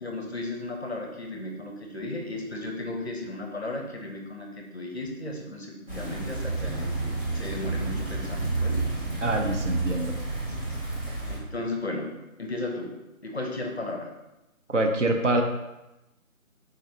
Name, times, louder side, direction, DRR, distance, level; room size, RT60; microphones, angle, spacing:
voice 1, 0.0-8.8 11.3-12.1 12.4-12.9 13.2-14.1, left 2 dB, 50° left, 2 dB, 0.5 m, -35 dB
sound 1, 5.9-11.4, right 3 dB, 40° right, 1.2 m, -30 dB
voice 2, 9.2-10.1 14.7-15.4, right 1 dB, 60° right, 3 dB, 0.6 m, -25 dB
3.8 x 3.2 x 2.7 m, 0.98 s
figure-of-eight pair, 170°, 43 cm